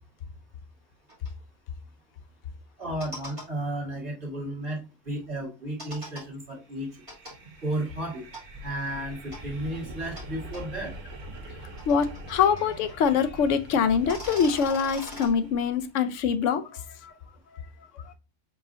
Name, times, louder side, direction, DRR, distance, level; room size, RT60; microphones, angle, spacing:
sound 1, 1.1-1.3 2.8-3.5 5.8-6.2 7.1-7.3 8.3-8.4 9.3-9.4 10.2-10.3 10.5-10.6 11.5-13.1 13.4-13.5 13.9-15.3, equal, 25° right, 2.3 m, -41 dB
voice 1, 2.8-7.0 7.6-8.2 8.6-10.9, right 1 dB, 45° right, 2.3 m, -33 dB
sound 2, 6.7-15.9, right 1 dB, 80° right, 1.5 m, -43 dB
voice 2, 11.9-17.1, left 6 dB, 75° left, 0.9 m, -24 dB
4.8 x 3.6 x 2.7 m
omnidirectional pair, 1.3 m